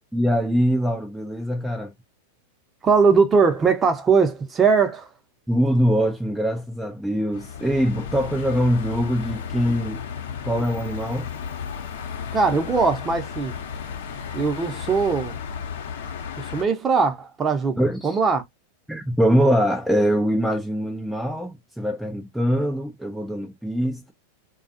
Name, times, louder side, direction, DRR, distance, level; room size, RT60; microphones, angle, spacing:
voice 1, 0.1-1.9 5.5-10.0 10.4-11.3 17.8-18.2 18.9-24.1, equal, ahead, 0.4 m, -23 dB
voice 2, 2.8-5.1 12.3-13.5 14.3-15.4 16.4-17.8 18.0-18.4, right 5 dB, 25° right, 0.8 m, -20 dB
sound 1, 7.3-16.6, left 7 dB, 75° left, 0.8 m, -34 dB
2.4 x 2.3 x 2.6 m
hypercardioid pair, 105°, 0 cm